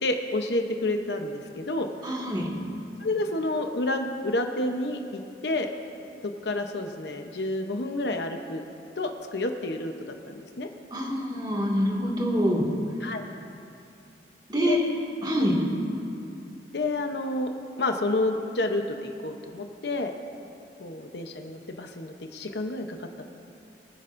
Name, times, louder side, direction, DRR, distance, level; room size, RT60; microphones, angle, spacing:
voice 1, 0.0-2.1 3.0-5.7 6.2-8.6 9.0-9.9 10.3-10.7 13.0-13.3 14.7-14.8 16.7-17.5 17.8-20.1 20.8-23.0, left 2 dB, 70° left, 5 dB, 0.8 m, -29 dB
voice 2, 2.0-2.5 10.9-12.7 14.5-14.8 15.2-15.5, equal, 25° right, -3 dB, 2.0 m, -25 dB
22.5 x 10.0 x 2.6 m, 2.6 s
head